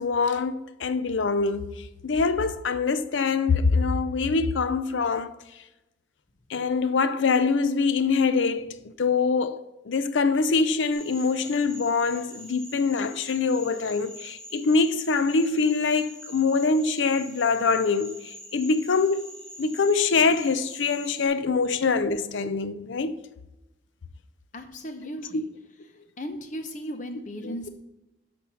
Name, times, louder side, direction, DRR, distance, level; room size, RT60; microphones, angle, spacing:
voice 1, 0.0-1.7 2.0-5.3 6.5-8.7 9.0-18.1 18.5-19.2 19.6-23.2 27.4-27.7, left 4 dB, 80° left, 0.5 m, -24 dB
sound 1, 10.9-21.3, equal, 5° left, 1.6 m, -44 dB
voice 2, 24.5-25.5 26.2-27.7, equal, 40° left, 0.9 m, -36 dB
12.5 x 4.3 x 5.7 m
head